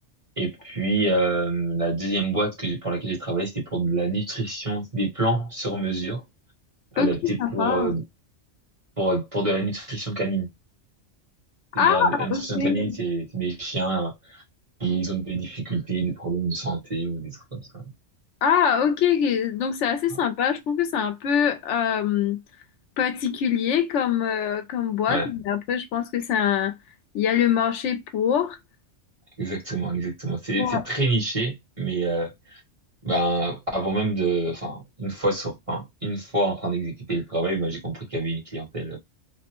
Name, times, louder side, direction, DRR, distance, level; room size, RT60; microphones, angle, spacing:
voice 1, 0.4-6.2 6.9-8.0 9.0-10.5 11.7-14.4 14.8-17.8 25.1-25.3 29.4-32.6 33.0-39.0, right 2 dB, 30° right, 1.2 m, -27 dB
voice 2, 7.0-7.9 11.8-12.9 18.4-22.4 23.0-26.7 27.1-28.6 30.6-30.8, left 8 dB, 75° left, 0.9 m, -23 dB
3.2 x 2.1 x 2.9 m
omnidirectional pair, 1.2 m